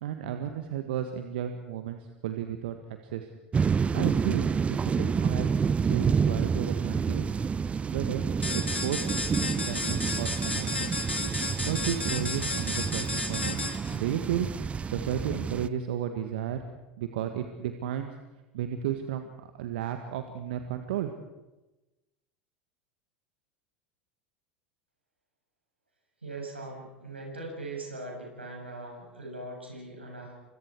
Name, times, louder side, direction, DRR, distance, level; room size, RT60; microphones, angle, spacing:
voice 1, 0.0-3.3 3.9-5.5 5.8-7.3 7.9-8.2 8.5-9.0 9.4-10.9 11.6-13.6 13.9-16.6 17.0-18.1 18.5-19.3 19.6-21.1, right 10 dB, 65° right, 7 dB, 1.7 m, -33 dB
sound 1, 3.5-15.7, right 6 dB, 20° right, 0.7 m, -29 dB
sound 2, 8.4-14.0, left 2 dB, 90° left, 2.1 m, -33 dB
voice 2, 26.2-30.3, right 2 dB, 85° right, 0 dB, 6.8 m, -40 dB
29.5 x 25.5 x 4.7 m, 1.0 s
figure-of-eight pair, 80°, 6 cm